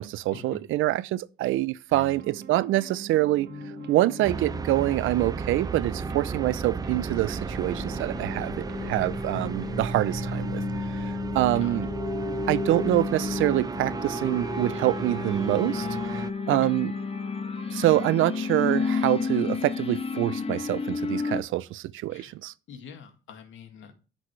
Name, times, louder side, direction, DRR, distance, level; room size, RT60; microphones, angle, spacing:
voice 1, 0.0-3.5 3.9-10.6 10.9-11.9 12.5-16.9 17.7-22.5, right 16 dB, 85° right, 0.5 m, -26 dB
sound 1, 2.1-19.9, right 10 dB, 60° right, 1.1 m, -45 dB
sound 2, 3.5-21.4, left 4 dB, 30° left, 0.8 m, -33 dB
sound 3, 4.2-16.3, right 5 dB, 20° right, 0.3 m, -35 dB
voice 2, 22.7-23.9, left 6 dB, 75° left, 2.0 m, -42 dB
10.0 x 6.2 x 3.1 m
cardioid pair, 90°, 20 cm